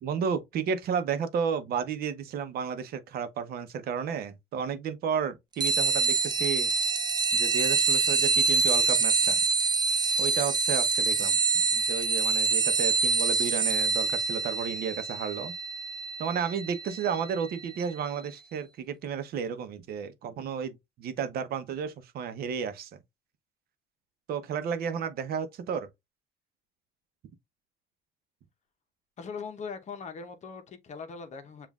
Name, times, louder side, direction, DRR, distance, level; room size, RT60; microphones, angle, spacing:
voice 1, 0.0-6.7 7.3-9.4 10.2-15.5 16.2-22.9 24.3-25.9, right 7 dB, 65° right, 0.8 m, -32 dB
sound 1, 5.6-17.7, right 4 dB, 25° right, 0.5 m, -26 dB
voice 2, 29.2-31.7, left 5 dB, 45° left, 0.9 m, -40 dB
7.1 x 2.5 x 2.3 m
cardioid pair, 110°, 17 cm